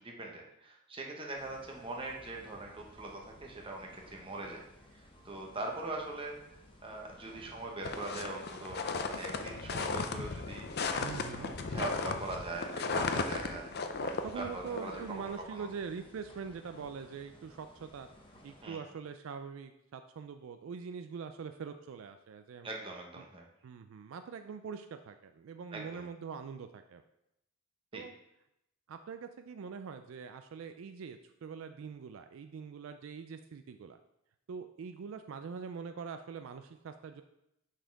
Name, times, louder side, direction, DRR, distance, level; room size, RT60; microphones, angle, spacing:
voice 1, 0.0-4.6 5.2-10.7 11.3-13.7 14.0-15.2 15.6-15.7 18.6-18.8 22.6-23.4 25.7-26.1 27.9-28.0, right 2 dB, 25° right, -1 dB, 1.0 m, -42 dB
sound 1, 1.4-18.7, left 1 dB, 25° left, 0.8 m, -58 dB
sound 2, 7.8-15.4, left 4 dB, 50° left, 0.5 m, -36 dB
voice 2, 11.0-11.6 14.2-18.1 18.4-22.7 23.2-23.3 23.6-27.0 27.9-28.1 28.9-34.0 34.5-37.2, right 6 dB, 65° right, 8 dB, 0.3 m, -43 dB
6.4 x 4.2 x 4.6 m, 0.84 s
head